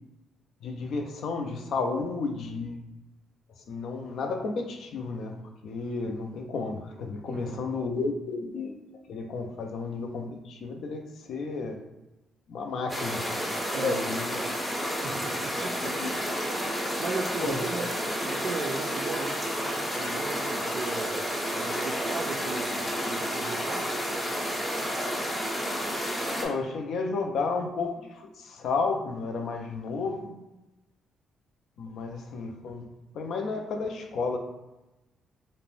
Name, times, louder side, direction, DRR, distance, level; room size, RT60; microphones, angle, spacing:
voice 1, 0.6-2.8 3.7-5.4 5.6-8.7 9.1-11.8 12.5-13.4 13.8-14.4 16.0-16.1 17.4-17.7 26.4-30.4 31.8-32.9 33.1-34.4, left 4 dB, 70° left, 4 dB, 0.4 m, -32 dB
voice 2, 7.3-7.7 13.7-14.1 15.0-16.1 16.5-21.2 21.5-24.0, right 4 dB, 55° right, 2 dB, 0.3 m, -37 dB
sound 1, 12.9-26.5, equal, 10° left, 0.6 m, -31 dB
2.5 x 2.1 x 3.1 m, 0.99 s
cardioid pair, 90°, 0 cm